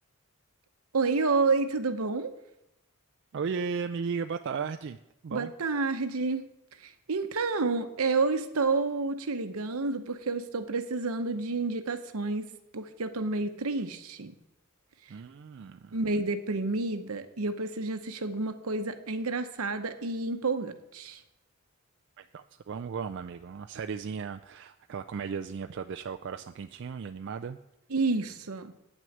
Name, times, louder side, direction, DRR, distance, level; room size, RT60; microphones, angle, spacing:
voice 1, 0.9-2.3 5.3-6.5 7.1-12.5 12.7-14.3 15.9-21.2 27.9-28.7, right 3 dB, 75° right, 9 dB, 0.9 m, -29 dB
voice 2, 3.3-5.0 5.2-5.5 15.1-16.0 22.2-27.6, right 6 dB, 55° right, 7 dB, 0.3 m, -35 dB
9.1 x 6.2 x 7.9 m, 0.87 s
head